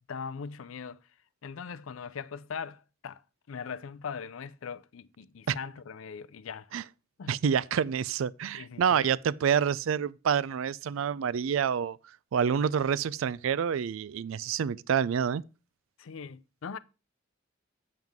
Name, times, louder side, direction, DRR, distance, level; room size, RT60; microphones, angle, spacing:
voice 1, 0.1-1.0 1.4-3.2 3.5-6.7 7.2-7.4 8.4-9.1 16.0-16.8, left 6 dB, 85° left, 0.5 m, -40 dB
voice 2, 7.3-12.0 12.3-15.4, right 7 dB, 80° right, 0.4 m, -27 dB
7.7 x 7.3 x 3.6 m
head